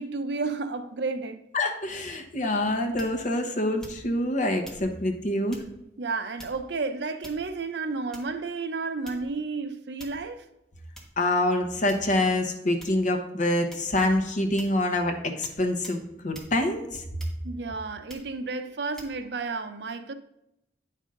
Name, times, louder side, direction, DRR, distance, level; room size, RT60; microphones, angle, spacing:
voice 1, 0.0-1.4 6.0-10.4 17.4-20.1, right 4 dB, 70° right, 0.6 m, -32 dB
voice 2, 1.5-5.6 11.2-17.0, left 1 dB, 45° left, 1.1 m, -26 dB
sound 1, 3.0-3.3 3.8-4.2 4.6-4.9 5.5-5.7 6.4-6.8 7.2-7.7 8.1-8.4 9.1-9.4 10.0-10.3 11.0-11.1 11.9-12.3 12.8-13.1 13.7-14.0 14.6-14.8 15.4-15.6 15.8-16.0 16.3-16.5 17.2-17.6 18.1-18.3 19.0-19.1, equal, 5° left, 1.4 m, -46 dB
9.1 x 5.5 x 3.8 m
head